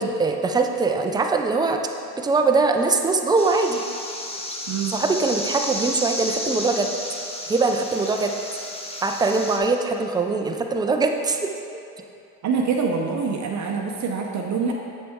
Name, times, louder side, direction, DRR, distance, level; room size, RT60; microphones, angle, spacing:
voice 1, 0.0-1.8 2.2-3.8 4.9-6.9 7.5-8.3 9.0-11.5, right 3 dB, 10° right, 4 dB, 0.4 m, -22 dB
sound 1, 3.4-9.6, left 1 dB, 15° left, 0.7 m, -32 dB
voice 2, 4.7-5.0 12.4-14.7, right 5 dB, 40° right, 1 dB, 0.7 m, -25 dB
7.5 x 5.9 x 3.6 m, 2.6 s
supercardioid pair, 95°, 45 cm